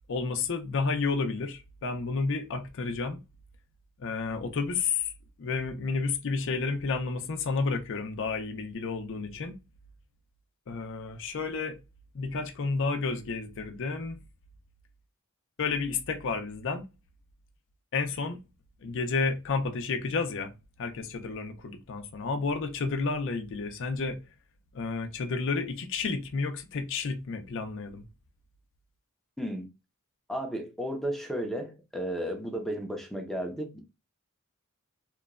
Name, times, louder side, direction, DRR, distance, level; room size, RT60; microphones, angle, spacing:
voice 1, 0.1-3.2 4.0-5.1 5.4-9.6 10.7-11.8 12.1-14.2 15.6-16.9 17.9-18.4 18.8-20.5 20.8-24.2 24.7-28.0, left 4 dB, 60° left, 0.5 m, -31 dB
voice 2, 29.4-29.7 30.3-33.8, equal, ahead, 0.5 m, -33 dB
2.9 x 2.2 x 2.3 m
head